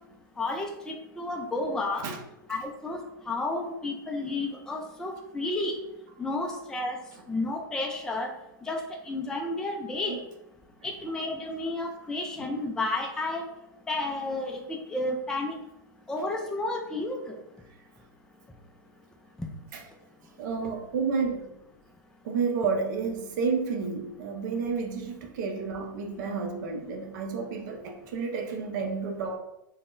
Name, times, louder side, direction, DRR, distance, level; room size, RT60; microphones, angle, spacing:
voice 1, 0.4-2.1 2.5-3.0 3.3-5.8 6.2-7.0 7.3-8.3 8.6-10.2 10.8-13.4 13.9-15.6 16.1-17.4, left 2 dB, 5° left, 1 dB, 0.3 m, -31 dB
voice 2, 20.4-21.5 22.2-29.4, right 5 dB, 55° right, 3 dB, 0.6 m, -30 dB
3.4 x 2.1 x 2.5 m, 0.88 s
hypercardioid pair, 105°, 12 cm